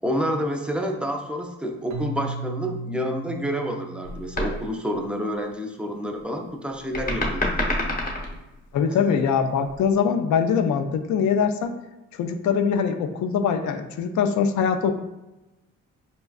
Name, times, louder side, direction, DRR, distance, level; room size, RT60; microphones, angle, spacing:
voice 1, 0.0-7.7 9.0-9.1, equal, 5° right, 2 dB, 0.4 m, -29 dB
Keyboard (musical), 1.9-4.9, right 2 dB, 80° right, 0.6 m, -36 dB
sound 1, 4.0-4.7 6.9-8.5 9.7-9.8, left 1 dB, 30° left, 0.9 m, -27 dB
voice 2, 8.7-11.7 12.1-14.9, left 6 dB, 70° left, 6 dB, 0.5 m, -22 dB
5.2 x 2.3 x 2.3 m, 1.0 s
cardioid pair, 90°, 30 cm